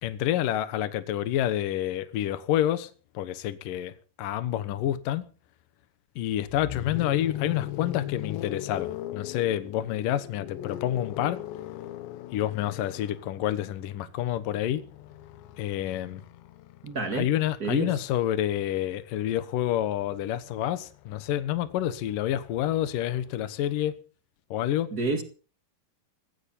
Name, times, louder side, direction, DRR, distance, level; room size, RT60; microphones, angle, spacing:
voice 1, 0.0-3.9 4.2-5.2 6.2-11.4 12.3-14.8 15.6-16.2 17.1-23.9 24.5-24.9, left 12 dB, 65° left, 2.4 m, -28 dB
sound 1, 6.4-18.4 19.7-23.3, left 13 dB, 90° left, 3.3 m, -40 dB
voice 2, 16.8-17.3 17.6-18.0 24.9-25.2, right 3 dB, 45° right, 1.1 m, -29 dB
20.0 x 15.5 x 4.3 m
omnidirectional pair, 5.0 m